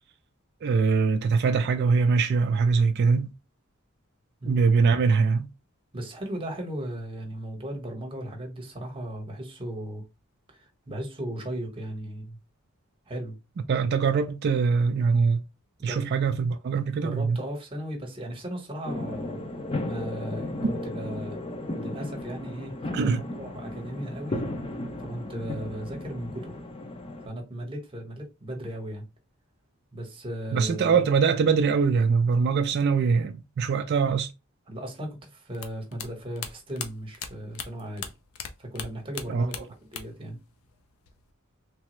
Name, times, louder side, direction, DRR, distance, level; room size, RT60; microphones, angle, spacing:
voice 1, 0.6-3.3 4.4-5.5 13.7-15.4 15.8-17.4 22.9-23.2 30.5-34.3 39.3-39.5, right 5 dB, 50° right, 0.3 m, -23 dB
voice 2, 5.9-10.0 10.5-12.4 13.1-13.3 15.8-16.1 17.0-19.4 19.8-21.4 21.7-24.5 25.0-26.6 27.2-29.1 29.9-31.0 34.7-38.1 38.6-40.4, right 1 dB, 25° right, 0.9 m, -36 dB
sound 1, 18.8-27.3, left 1 dB, 25° left, 0.5 m, -35 dB
sound 2, 35.5-38.5 38.7-40.3 40.5-41.3, left 7 dB, 90° left, 0.5 m, -38 dB
3.3 x 2.0 x 2.9 m
head